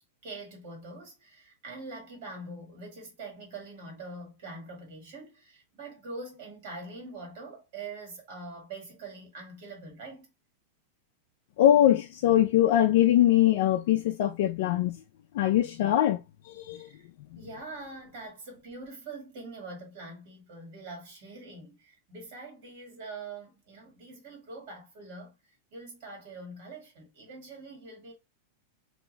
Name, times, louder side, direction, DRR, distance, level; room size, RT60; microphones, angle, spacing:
voice 1, 0.2-10.3 16.8-17.0 17.3-25.3 25.7-28.1, right 2 dB, 55° right, 1.5 m, -44 dB
voice 2, 11.6-15.0 15.3-16.9, left 12 dB, 55° left, 0.3 m, -22 dB
2.5 x 2.2 x 3.0 m
supercardioid pair, 160°, 0 cm